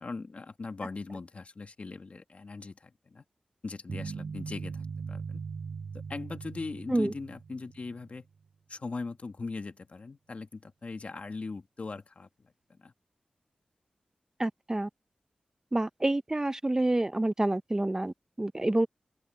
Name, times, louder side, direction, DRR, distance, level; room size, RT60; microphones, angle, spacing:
voice 1, 0.0-3.2 3.6-5.4 6.1-8.3 8.7-12.5 12.8-12.9, left 3 dB, 55° left, 1.9 m, -40 dB
sound 1, 3.9-8.1, right 5 dB, 70° right, 0.4 m, -40 dB
voice 2, 14.4-14.9 15.7-18.9, right 1 dB, 25° right, 0.9 m, -28 dB
open air
wide cardioid pair, 65°, 3 cm